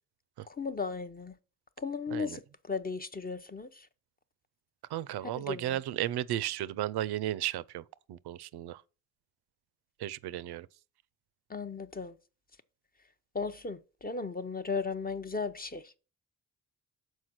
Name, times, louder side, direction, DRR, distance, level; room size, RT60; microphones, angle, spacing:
voice 1, 0.5-1.3 1.8-3.9 5.4-5.8 11.5-12.2 13.3-15.9, left 4 dB, 25° left, 0.5 m, -36 dB
voice 2, 4.9-7.8 8.1-8.8 10.0-10.7, right 13 dB, 85° right, 0.5 m, -34 dB
6.4 x 4.6 x 5.9 m
cardioid pair, 75°, 38 cm